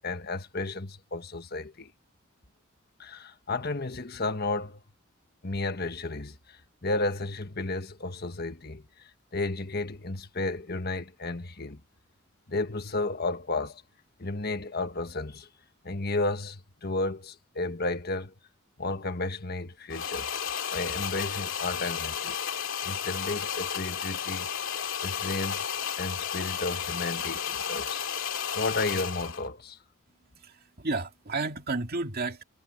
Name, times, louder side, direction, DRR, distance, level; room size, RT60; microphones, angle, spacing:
voice 1, 0.0-1.9 3.0-4.8 5.4-8.8 9.3-11.8 12.5-13.8 14.2-15.5 15.8-18.3 18.8-20.3 20.7-22.3 22.8-24.5 25.0-25.7 26.0-28.3 28.5-29.8, left 2 dB, 50° left, 1.5 m, -33 dB
sound 1, 19.9-29.5, left 8 dB, 65° left, 2.3 m, -33 dB
voice 2, 30.4-32.4, right 3 dB, 45° right, 2.4 m, -32 dB
head